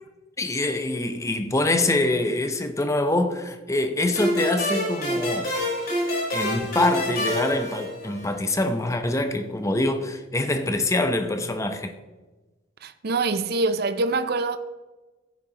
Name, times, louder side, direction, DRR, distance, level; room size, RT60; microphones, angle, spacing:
voice 1, 0.4-5.5 6.3-11.9, left 2 dB, 15° left, 0.7 m, -25 dB
sound 1, 4.2-8.5, left 1 dB, 50° left, 3.9 m, -27 dB
voice 2, 12.8-14.6, right 3 dB, 55° right, 0.5 m, -24 dB
15.0 x 9.3 x 2.9 m
head